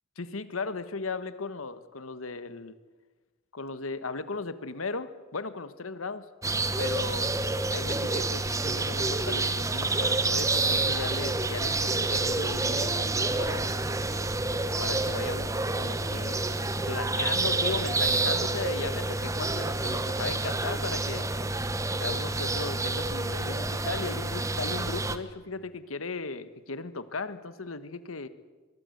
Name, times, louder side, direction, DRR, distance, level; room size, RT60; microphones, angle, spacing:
voice 1, 0.2-2.7 3.5-6.3 6.8-7.3 7.7-13.6 14.8-15.5 15.8-16.5 16.9-21.3 22.0-28.3, left 4 dB, 90° left, 13 dB, 1.3 m, -36 dB
sound 1, 6.4-25.2, right 2 dB, 15° right, 1.0 m, -28 dB
23.0 x 22.5 x 7.9 m, 1.3 s
head